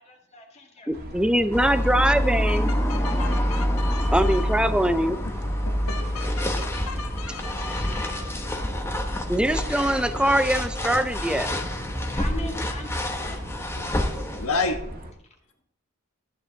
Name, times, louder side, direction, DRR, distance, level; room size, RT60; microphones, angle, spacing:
voice 1, 0.0-0.9 12.1-13.5 15.2-15.4, left 2 dB, 30° left, 2 dB, 2.1 m, -39 dB
voice 2, 0.9-2.7 4.1-5.2 9.3-11.5, right 1 dB, 5° right, 11 dB, 0.6 m, -22 dB
sound 1, 0.9-15.1, equal, 45° right, 1.8 m, -39 dB
sound 2, 1.5-14.5, equal, 10° left, 1.1 m, -27 dB
voice 3, 2.9-4.7 5.6-8.4 13.7-14.0 14.4-14.8, left 3 dB, 85° left, 6 dB, 1.3 m, -33 dB
13.0 x 9.5 x 3.9 m, 0.70 s
head